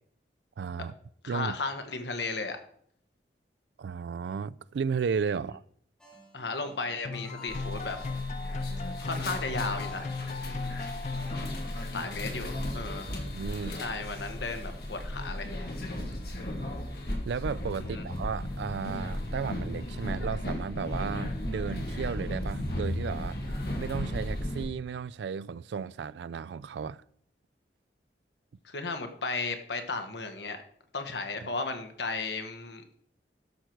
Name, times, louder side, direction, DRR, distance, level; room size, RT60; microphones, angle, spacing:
voice 1, 0.6-0.9 1.3-1.6 3.8-5.6 13.0-13.8 17.2-23.4 23.8-27.0 31.4-31.5, right 6 dB, 75° right, 0.3 m, -34 dB
voice 2, 1.2-2.6 6.3-8.0 9.0-10.2 11.9-13.1 13.8-15.6 17.9-18.0 28.6-30.6 30.9-33.0, left 3 dB, 75° left, 1.3 m, -35 dB
sound 1, 6.0-11.3, equal, 5° left, 2.8 m, -54 dB
sound 2, 7.0-12.2, left 4 dB, 40° left, 0.3 m, -37 dB
sound 3, 7.5-24.7, left 1 dB, 60° left, 2.0 m, -35 dB
12.5 x 6.3 x 4.5 m
head